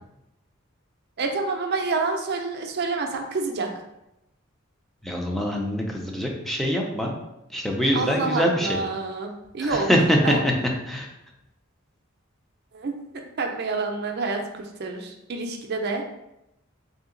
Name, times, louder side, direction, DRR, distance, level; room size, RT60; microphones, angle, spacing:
voice 1, 1.2-3.7 7.9-9.9 10.2-10.4 12.7-12.9 13.4-16.1, right 3 dB, 50° right, 3 dB, 0.5 m, -28 dB
voice 2, 5.0-7.1 7.5-8.8 9.6-10.5 10.9-11.1, equal, ahead, -1 dB, 0.5 m, -24 dB
3.3 x 2.7 x 3.8 m, 0.88 s
head